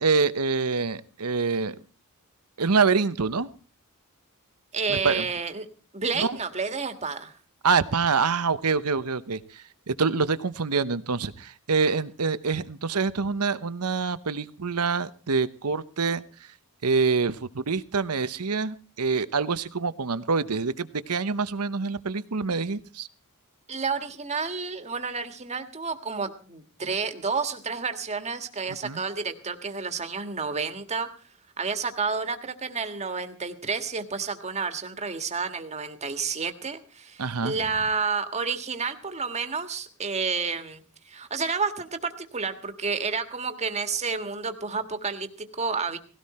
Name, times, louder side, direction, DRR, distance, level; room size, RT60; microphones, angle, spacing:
voice 1, 0.0-1.8 2.6-3.5 4.9-5.2 6.2-6.4 7.6-16.2 16.8-23.1 28.8-29.0 37.2-37.5, right 4 dB, 85° right, 14 dB, 1.0 m, -26 dB
voice 2, 4.7-5.7 5.9-7.3 23.7-31.1 31.6-46.0, right 5 dB, 30° right, 8 dB, 1.8 m, -30 dB
18.5 x 17.0 x 4.4 m, 0.38 s
head